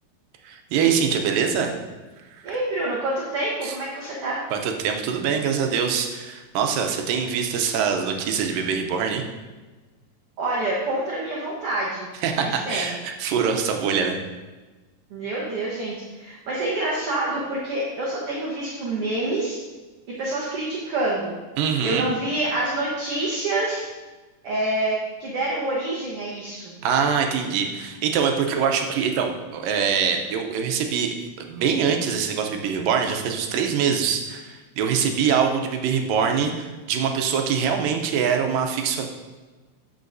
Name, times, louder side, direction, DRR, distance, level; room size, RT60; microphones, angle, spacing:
voice 1, 0.4-1.7 2.4-2.6 3.6-3.8 4.5-9.2 12.2-14.2 21.6-22.1 26.8-31.2 31.5-39.0, right 7 dB, 80° right, 4 dB, 2.4 m, -24 dB
voice 2, 2.4-4.4 10.4-12.1 12.4-13.0 15.1-19.6 20.2-21.3 21.8-23.8 24.4-26.7, right 2 dB, 60° right, -4 dB, 1.6 m, -27 dB
13.5 x 5.6 x 2.7 m, 1.3 s
omnidirectional pair, 3.9 m